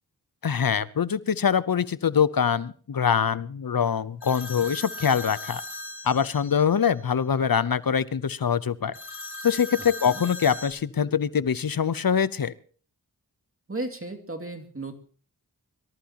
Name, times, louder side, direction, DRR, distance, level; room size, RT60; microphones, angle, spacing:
voice 1, 0.4-5.6 6.0-8.9 9.4-12.5, left 7 dB, 60° left, 17 dB, 0.8 m, -24 dB
sound 1, 4.2-6.8 8.9-10.7, left 2 dB, 80° left, 2.0 m, -38 dB
voice 2, 9.7-10.2 13.7-15.0, right 2 dB, 35° right, 3 dB, 2.5 m, -35 dB
24.5 x 14.5 x 2.9 m, 0.43 s
cardioid pair, 45°, 40 cm